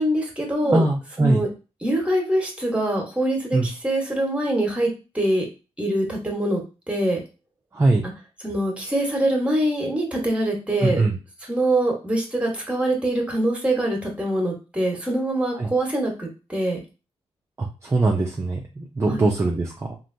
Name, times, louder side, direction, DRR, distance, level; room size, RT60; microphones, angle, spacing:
voice 1, 0.0-0.9 1.2-1.5 1.8-4.9 5.1-5.4 5.8-6.6 6.9-7.2 8.4-11.0 11.5-16.8 19.1-19.2, right 1 dB, 10° right, 0 dB, 1.3 m, -24 dB
voice 2, 0.6-1.4 3.5-3.7 7.7-8.0 10.8-11.2 15.6-15.7 17.6-20.0, right 2 dB, 25° right, -1 dB, 0.6 m, -22 dB
3.2 x 2.6 x 2.7 m, 0.31 s
cardioid pair, 75°, 11 cm